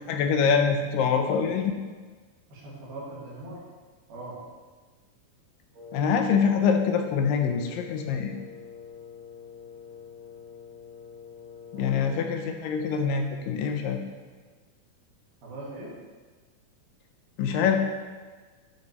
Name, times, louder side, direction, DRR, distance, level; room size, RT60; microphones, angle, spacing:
voice 1, 0.1-1.8 5.9-8.4 11.7-14.0 17.4-17.8, left 6 dB, 80° left, 4 dB, 2.2 m, -25 dB
voice 2, 2.5-3.7 4.1-4.4 11.7-12.0 15.4-15.9, right 2 dB, 80° right, -7 dB, 4.0 m, -40 dB
Wind instrument woodwind instrument, 5.7-12.5, left 7 dB, 25° right, 2.4 m, -46 dB
11.5 x 6.3 x 3.0 m, 1.4 s
omnidirectional pair, 4.2 m